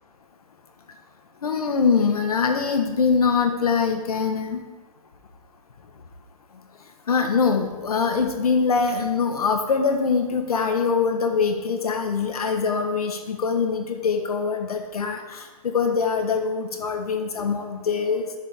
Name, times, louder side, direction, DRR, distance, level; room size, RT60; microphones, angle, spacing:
voice 1, 1.4-4.6 7.1-18.3, left 5 dB, 80° left, 4 dB, 1.5 m, -23 dB
14.0 x 6.8 x 3.7 m, 1.3 s
hypercardioid pair, 155°, 19 cm